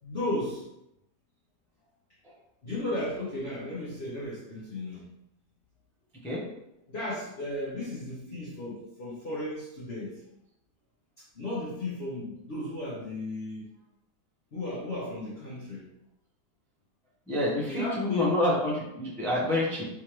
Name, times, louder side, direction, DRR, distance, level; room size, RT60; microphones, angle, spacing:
voice 1, 0.0-0.6 2.6-5.0 6.9-10.2 11.2-13.7 14.5-15.8 17.6-18.4, left 1 dB, 45° left, -7 dB, 0.9 m, -35 dB
voice 2, 17.3-19.9, left 1 dB, 5° left, -5 dB, 0.4 m, -28 dB
3.6 x 3.1 x 3.0 m, 0.83 s
omnidirectional pair, 1.8 m